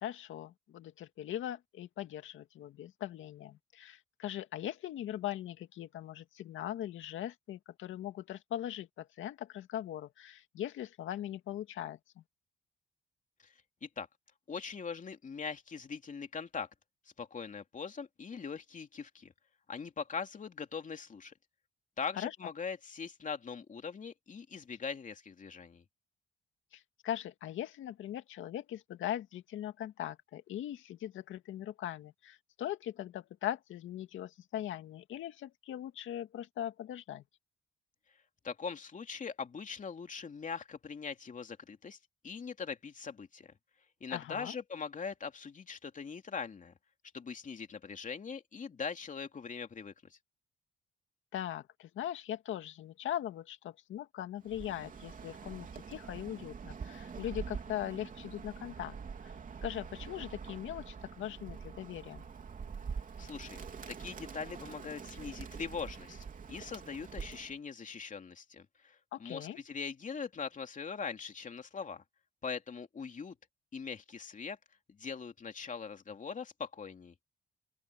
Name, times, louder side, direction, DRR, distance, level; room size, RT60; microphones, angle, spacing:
voice 1, 0.0-12.2 22.2-22.3 26.7-37.2 44.1-44.5 51.3-58.9 59.6-62.2 69.1-69.6, left 11 dB, 80° left, 2.2 m, -40 dB
voice 2, 14.5-16.7 17.2-19.3 19.7-21.3 22.0-25.8 38.4-42.0 42.2-43.5 44.0-46.7 47.1-50.2 63.2-63.6 63.9-72.0 72.4-73.3 73.7-74.6 74.9-77.1, left 5 dB, 40° left, 2.9 m, -41 dB
Bird, 54.4-67.6, right 6 dB, 45° right, 3.2 m, -45 dB
open air
cardioid pair, 90°, 20 cm